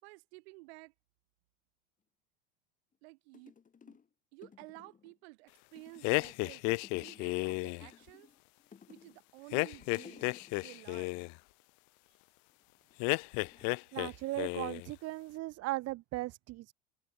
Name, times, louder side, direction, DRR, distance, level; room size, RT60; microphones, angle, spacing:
voice 1, 0.0-0.9 3.0-3.5 3.9-4.0 4.3-8.3 8.9-11.3, right 26 dB, 75° right, 4.2 m, -53 dB
sound 1, 2.9-3.0 3.3-4.1 4.4-5.2 5.7-6.5 6.8-7.4 7.8-9.2 9.5-10.9 12.5-12.9 13.4-14.5 14.8-15.3, left 6 dB, 25° left, 6.3 m, -57 dB
sound 2, 6.0-7.9 9.5-11.3 13.0-14.1 14.4-14.9, left 34 dB, 65° left, 0.9 m, -33 dB
voice 2, 13.9-16.7, right 18 dB, 50° right, 1.4 m, -37 dB
supercardioid pair, 115°, 31 cm